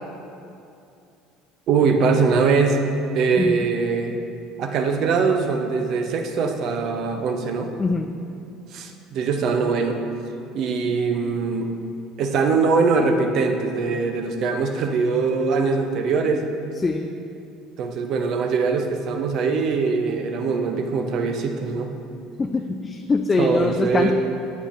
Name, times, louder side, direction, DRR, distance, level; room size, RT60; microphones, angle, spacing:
voice 1, 1.7-2.8 3.1-4.2 4.6-7.7 8.7-10.0 10.5-11.7 12.2-16.4 17.8-21.9 23.4-24.1, right 4 dB, 55° right, 5 dB, 0.6 m, -22 dB
voice 2, 7.8-8.1 16.8-17.1 22.4-24.1, left 3 dB, 25° left, 5 dB, 0.3 m, -23 dB
8.1 x 7.2 x 2.6 m, 2.6 s
hypercardioid pair, 65°, 0 cm